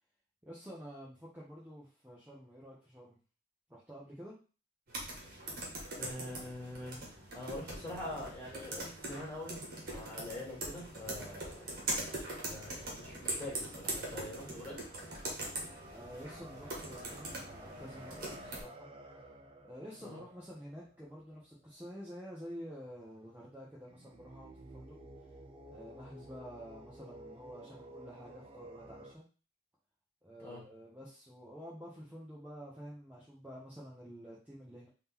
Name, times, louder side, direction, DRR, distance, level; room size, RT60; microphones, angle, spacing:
voice 1, 0.4-3.2 3.7-4.3 15.9-18.9 19.6-25.0 25.7-29.2 30.2-34.9, equal, 10° right, -6 dB, 0.9 m, -49 dB
sound 1, 4.9-18.6, right 2 dB, 50° right, 1.4 m, -42 dB
voice 2, 6.0-11.6 12.4-14.8 20.0-20.2 30.4-30.6, left 1 dB, 10° left, -6 dB, 2.3 m, -44 dB
sound 2, 10.5-21.9 23.8-29.2, right 1 dB, 30° right, 0.5 m, -54 dB
3.9 x 2.9 x 3.6 m, 0.35 s
head